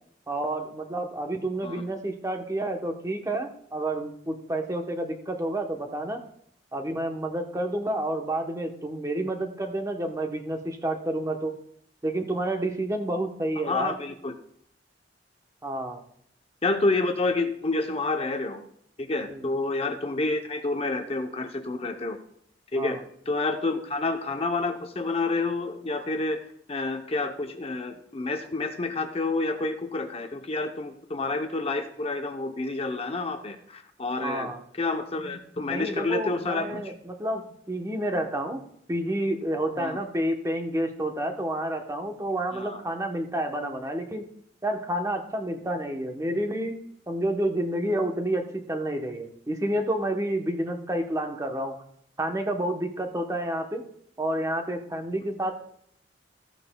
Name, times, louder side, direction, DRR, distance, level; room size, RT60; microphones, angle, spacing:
voice 1, 0.3-6.2 6.7-11.5 12.0-13.9 15.6-16.0 19.3-19.5 22.7-23.0 34.2-34.6 35.7-38.6 38.9-44.3 44.6-46.8 47.1-51.7 52.2-53.8 54.2-55.5, right 1 dB, 15° right, 4 dB, 0.9 m, -29 dB
voice 2, 13.6-14.3 16.6-18.6 19.0-22.2 22.7-23.0 23.3-26.4 26.7-36.9 39.8-40.0 42.5-42.8, left 3 dB, 30° left, 6 dB, 0.7 m, -29 dB
14.0 x 9.4 x 2.2 m, 0.68 s
head